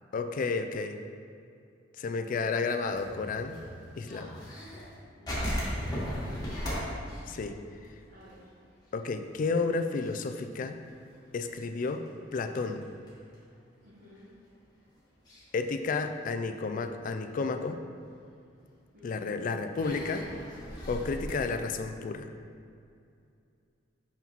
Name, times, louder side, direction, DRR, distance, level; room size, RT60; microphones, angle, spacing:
voice 1, 0.1-1.0 2.0-3.6 4.0-4.4 7.3-7.6 8.9-10.8 11.3-12.0 12.3-12.9 15.5-17.8 19.0-20.3 20.9-22.2, left 4 dB, 45° left, 7 dB, 0.3 m, -31 dB
sound 1, 2.8-4.9 5.3-8.5 8.8-8.9 9.3-9.6 9.9-13.3 14.1-14.2 15.3-15.5 16.0-16.7 17.2-17.3 18.6-18.7 19.7-21.3, equal, 20° left, 1.4 m, -37 dB
voice 2, 5.2-6.9 8.1-8.5 13.8-14.3 18.9-19.4, equal, 45° right, -9 dB, 1.1 m, -54 dB
5.6 x 5.6 x 3.0 m, 2.5 s
head